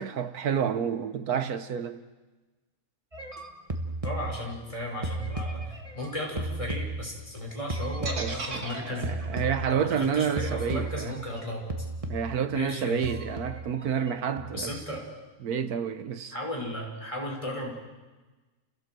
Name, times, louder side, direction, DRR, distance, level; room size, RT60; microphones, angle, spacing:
voice 1, 0.0-2.0 8.2-11.1 12.1-14.8 15.4-16.3, right 7 dB, 80° right, 10 dB, 1.6 m, -29 dB
sound 1, 3.1-4.7 5.0-7.4 7.7-10.1 10.4-11.4 11.7-12.5 13.0-14.1 14.4-14.9, right 1 dB, 25° right, 1.6 m, -35 dB
voice 2, 4.0-9.1 9.7-11.9 12.5-13.1 14.5-15.1 16.3-17.7, left 1 dB, 20° left, -1 dB, 5.3 m, -35 dB
sound 2, 8.1-12.1, right 3 dB, 55° right, 2.3 m, -39 dB
30.0 x 16.5 x 7.7 m, 1.2 s
omnidirectional pair, 1.6 m